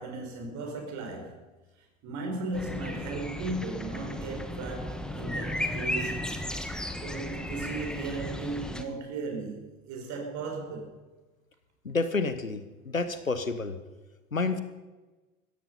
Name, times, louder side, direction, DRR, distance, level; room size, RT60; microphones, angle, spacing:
voice 1, 0.0-1.4 1.8-6.4 7.0-11.0, right 3 dB, 45° right, 5.2 m, -36 dB
sound 1, 2.5-8.8, left 1 dB, ahead, 1.5 m, -35 dB
voice 2, 11.8-13.7 14.3-14.6, left 3 dB, 90° left, 1.2 m, -29 dB
16.0 x 15.0 x 5.5 m
figure-of-eight pair, 80°, 39 cm